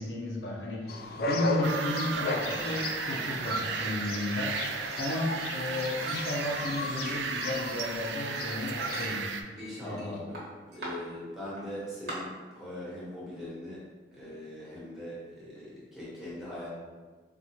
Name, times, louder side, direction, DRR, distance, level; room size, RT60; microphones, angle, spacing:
voice 1, 0.0-4.6 5.0-9.3 9.8-10.2, left 1 dB, 85° left, -2 dB, 0.7 m, -33 dB
sound 1, 0.9-9.2, left 3 dB, 55° left, 0.3 m, -36 dB
sound 2, 1.6-9.4, right 6 dB, 75° right, 0.3 m, -35 dB
Chink clink, 6.1-7.3 7.6-8.4 8.9-10.0 10.3-10.9 11.6-11.7 12.1-12.2, right 1 dB, 60° right, 1.2 m, -43 dB
voice 2, 9.6-10.4 10.7-13.8 14.1-16.7, left 1 dB, 5° right, -9 dB, 1.1 m, -41 dB
4.5 x 2.4 x 2.8 m, 1.4 s
head